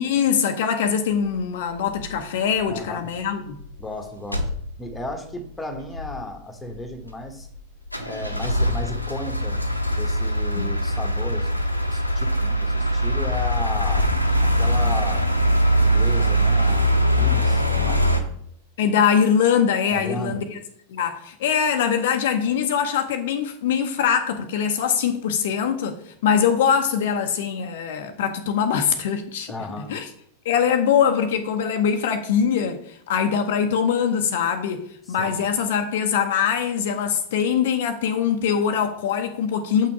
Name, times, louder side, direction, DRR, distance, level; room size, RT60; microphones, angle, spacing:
voice 1, 0.0-3.6 10.5-10.7 18.8-20.6 20.9-29.5 29.9-30.1 30.4-39.9, left 7 dB, 55° left, 0.8 m, -22 dB
sound 1, 1.9-2.1 2.6-2.8 3.1-3.2 3.4-3.9 4.3-5.1 5.4-5.5 5.7-6.2 6.7-7.6 7.9-18.2, equal, 90° left, 1.0 m, -22 dB
voice 2, 2.7-3.1 3.8-4.4 4.8-7.5 8.0-9.6 9.9-11.5 11.9-14.1 14.4-15.3 15.8-18.1 19.9-20.4 29.5-29.9 35.1-35.4, left 1 dB, 10° left, 1.5 m, -34 dB
7.8 x 5.8 x 4.8 m
figure-of-eight pair, 90°, 0 cm